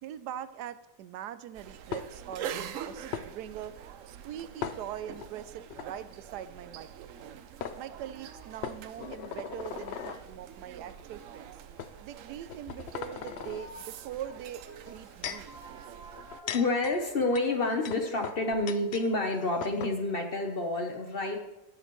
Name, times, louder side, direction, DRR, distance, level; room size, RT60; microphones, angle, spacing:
voice 1, 0.0-3.7 4.1-7.4 7.8-11.6 12.0-14.6 14.9-15.6, right 10 dB, 80° right, 13 dB, 1.1 m, -42 dB
sound 1, 1.5-16.4, right 9 dB, 65° right, 0.8 m, -45 dB
sound 2, 1.9-2.4 3.1-3.3 4.6-5.3 5.7-5.9 7.2-7.3 7.6-7.8 8.6-10.2 11.0-11.1 11.8-11.9 12.4-13.6 14.7-15.5 16.2-19.1 19.3-19.4 19.6-20.0, left 8 dB, 70° left, 0.6 m, -39 dB
voice 2, 9.0-9.4 10.0-10.2 13.1-13.2 13.6-13.8 15.3-21.5, left 2 dB, 40° left, 3 dB, 1.0 m, -30 dB
18.5 x 6.5 x 3.0 m, 0.98 s
omnidirectional pair, 1.7 m